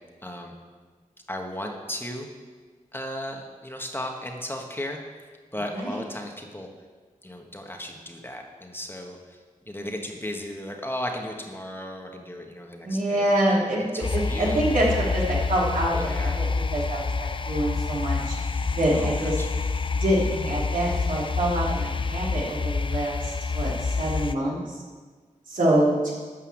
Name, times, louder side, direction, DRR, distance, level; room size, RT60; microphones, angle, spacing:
voice 1, 0.2-0.5 1.3-2.3 2.9-5.0 5.5-6.7 7.2-9.4 9.7-13.3 13.8-14.7 15.9-16.4 18.9-19.5, left 1 dB, 15° left, 2 dB, 1.4 m, -35 dB
voice 2, 12.8-18.3 18.7-19.4 20.0-24.8 25.5-26.1, right 1 dB, 75° right, -5 dB, 3.1 m, -26 dB
sound 1, 14.0-24.3, left 4 dB, 35° left, 0.5 m, -28 dB
11.5 x 5.6 x 7.2 m, 1.5 s
cardioid pair, 60°, 14 cm